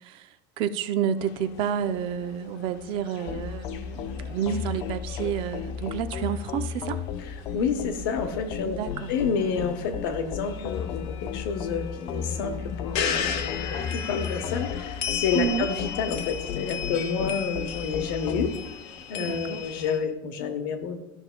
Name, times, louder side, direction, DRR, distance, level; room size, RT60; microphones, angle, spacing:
voice 1, 0.0-7.0 8.6-9.1 15.3-15.7 19.2-19.6, right 8 dB, 50° right, 12 dB, 0.4 m, -30 dB
sound 1, 1.2-20.0, left 8 dB, 60° left, 0.8 m, -37 dB
sound 2, 3.3-18.5, left 7 dB, 40° left, 0.4 m, -35 dB
voice 2, 7.5-8.8 9.1-18.5 19.1-21.0, left 6 dB, 80° left, 6 dB, 1.0 m, -29 dB
12.5 x 6.0 x 2.2 m, 0.96 s
supercardioid pair, 145°, 12 cm